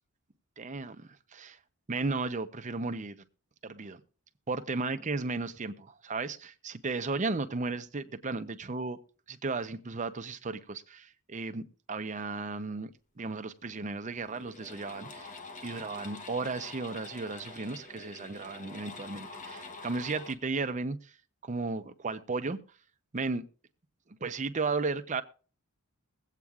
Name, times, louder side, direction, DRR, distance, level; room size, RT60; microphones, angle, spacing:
voice 1, 0.6-1.6 1.9-3.2 3.6-4.0 4.5-9.0 9.3-12.9 13.2-15.3 15.6-21.1 21.4-22.6 23.1-23.4 24.2-25.2, right 3 dB, 35° right, 0.6 m, -34 dB
sound 1, 13.6-13.7 14.1-20.4, left 3 dB, 35° left, 0.9 m, -46 dB
22.0 x 8.3 x 2.4 m
head